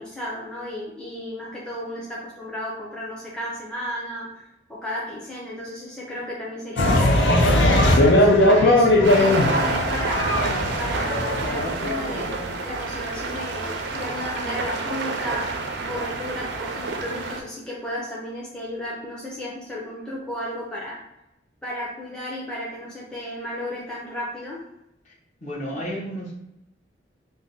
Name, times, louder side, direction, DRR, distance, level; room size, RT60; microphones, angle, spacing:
voice 1, 0.0-4.4 4.7-7.0 7.4-10.4 10.8-15.5 15.9-21.0 21.6-24.6, left 1 dB, 5° left, -6 dB, 0.5 m, -33 dB
sound 1, 6.8-12.4, left 1 dB, 80° left, 0.5 m, -19 dB
sound 2, 9.0-17.4, right 3 dB, 70° right, 0.4 m, -29 dB
voice 2, 25.4-26.4, equal, 45° left, -5 dB, 0.9 m, -32 dB
2.6 x 2.1 x 3.7 m, 0.87 s
head